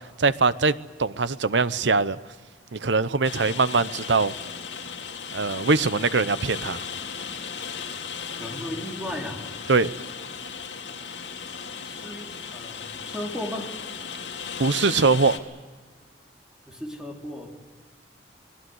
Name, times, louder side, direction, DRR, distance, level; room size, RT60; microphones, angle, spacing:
voice 1, 0.2-2.2 2.7-4.3 5.3-6.9 9.7-9.9 14.6-15.4, right 4 dB, 80° right, 0.9 m, -22 dB
Rain, 3.2-15.4, left 6 dB, 85° left, 2.7 m, -36 dB
voice 2, 8.4-9.4 11.9-13.7 16.7-17.6, left 1 dB, 5° right, 3.6 m, -35 dB
27.0 x 20.5 x 8.0 m
head